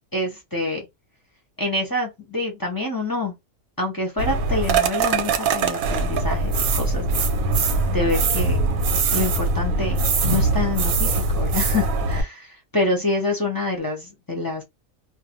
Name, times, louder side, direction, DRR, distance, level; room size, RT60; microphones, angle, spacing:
voice 1, 0.1-0.9 1.6-3.3 3.8-7.2 7.9-8.6 9.1-12.5 12.7-14.6, left 2 dB, 25° left, 0.5 m, -26 dB
sound 1, 4.2-12.2, right 3 dB, 90° right, 1.1 m, -22 dB
2.5 x 2.0 x 2.8 m
omnidirectional pair, 1.4 m